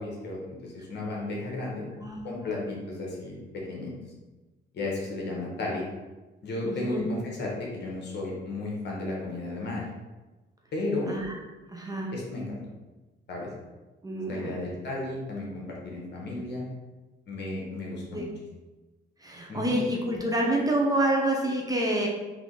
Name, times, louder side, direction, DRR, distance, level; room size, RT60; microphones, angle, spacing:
voice 1, 0.0-1.8 2.2-3.9 4.7-5.8 6.4-9.8 10.7-11.1 12.1-12.6 13.3-13.5 14.3-16.7 17.3-18.3 19.5-19.8, left 2 dB, 60° left, -3 dB, 1.3 m, -34 dB
voice 2, 2.0-2.6 6.6-7.1 11.1-11.4 11.7-12.1 14.0-14.6 18.1-18.3 19.2-22.1, right 1 dB, 20° right, -1 dB, 0.8 m, -28 dB
3.7 x 3.0 x 3.9 m, 1.2 s
cardioid pair, 90°, 20 cm